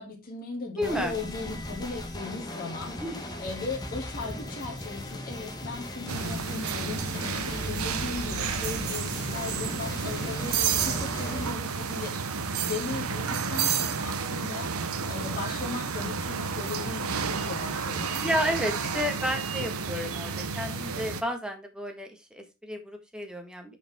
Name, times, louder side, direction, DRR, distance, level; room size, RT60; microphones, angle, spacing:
voice 1, 0.0-3.0 3.4-18.2, left 3 dB, 45° left, -1 dB, 2.3 m, -38 dB
sound 1, 0.8-11.5, left 1 dB, 20° left, 1.2 m, -37 dB
voice 2, 0.8-1.1 3.0-3.4 14.6-14.8 18.2-23.8, equal, 5° right, 4 dB, 1.4 m, -32 dB
sound 2, 6.1-21.2, right 6 dB, 90° right, 0.8 m, -31 dB
8.7 x 5.0 x 3.5 m, 0.24 s
head